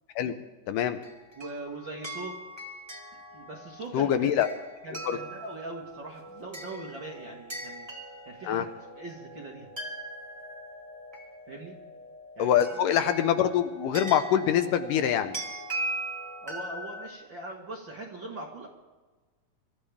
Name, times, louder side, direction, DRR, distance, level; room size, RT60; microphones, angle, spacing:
voice 1, 0.7-1.0 3.9-4.5 5.1-5.2 8.5-8.7 12.4-15.4, left 10 dB, 80° left, 9 dB, 2.3 m, -24 dB
sound 1, 1.0-17.1, right 1 dB, 10° right, 1.6 m, -40 dB
voice 2, 1.4-2.4 3.3-4.3 4.8-7.9 8.2-9.7 11.5-11.8 12.4-12.6 16.4-18.7, right 2 dB, 45° right, -1 dB, 1.7 m, -41 dB
24.5 x 13.5 x 3.5 m, 1.3 s
omnidirectional pair, 4.0 m